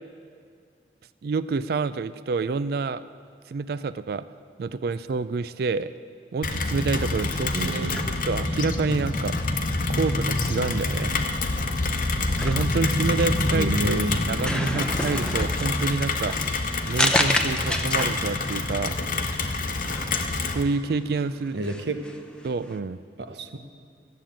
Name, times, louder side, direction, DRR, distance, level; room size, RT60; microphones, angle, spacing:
voice 1, 1.2-3.0 3.5-4.2 4.6-5.9 6.3-9.5 9.9-11.1 12.4-16.4 16.9-19.0 20.5-21.6 22.4-23.0, right 4 dB, 60° right, 14 dB, 0.4 m, -28 dB
Rain, 6.4-20.6, left 3 dB, 50° left, 0.9 m, -27 dB
voice 2, 7.5-8.1 13.5-14.2 21.5-22.1 23.2-23.6, right 2 dB, 75° right, 8 dB, 0.9 m, -29 dB
sound 1, 7.9-22.8, left 1 dB, 5° left, 0.7 m, -32 dB
14.0 x 7.6 x 8.7 m, 2.1 s
head